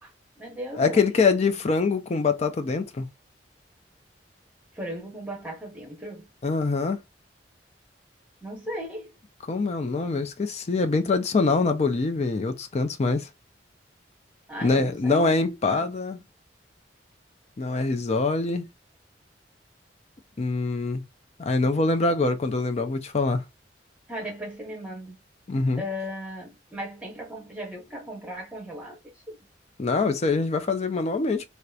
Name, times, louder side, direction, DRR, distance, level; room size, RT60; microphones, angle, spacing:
voice 1, 0.0-1.2 4.7-6.3 8.4-9.1 14.5-15.9 24.1-25.2 25.8-29.0 29.3-29.4, equal, 5° right, 1.0 m, -37 dB
voice 2, 0.7-3.1 6.4-7.0 9.5-13.3 14.6-16.2 17.6-18.7 20.4-21.0 21.4-23.4 25.5-25.8 29.8-31.5, left 3 dB, 35° left, 0.4 m, -24 dB
2.8 x 2.1 x 2.3 m
head